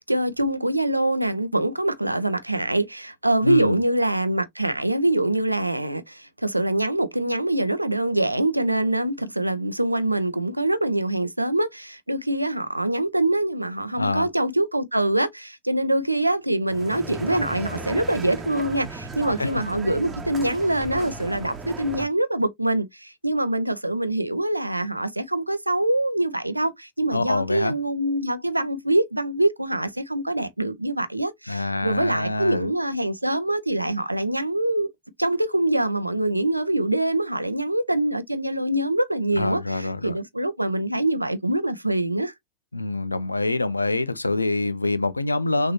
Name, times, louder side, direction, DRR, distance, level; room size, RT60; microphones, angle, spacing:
voice 1, 0.0-34.9 35.2-42.3, right 1 dB, 85° right, 0.6 m, -24 dB
voice 2, 3.4-3.8 13.9-14.3 19.4-19.5 27.1-27.7 31.5-32.7 39.3-40.2 42.7-45.7, left 2 dB, 80° left, 0.5 m, -25 dB
sound 1, 16.7-22.1, right 3 dB, 20° right, 1.2 m, -36 dB
6.1 x 2.9 x 3.0 m
figure-of-eight pair, 90°, 0 cm